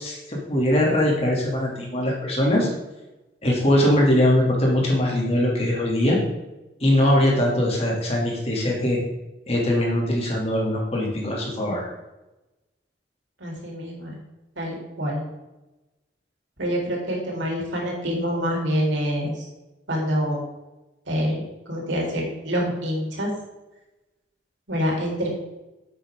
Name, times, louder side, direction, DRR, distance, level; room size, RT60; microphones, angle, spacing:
voice 1, 0.0-2.7 3.4-6.2 6.8-9.0 9.5-11.9, left 1 dB, 35° left, -2 dB, 2.9 m, -21 dB
voice 2, 13.4-14.2 14.6-15.2 16.6-19.5 19.9-20.4 21.1-23.3 24.7-25.3, equal, 80° right, -2 dB, 3.8 m, -26 dB
11.0 x 8.5 x 3.8 m, 1.0 s
head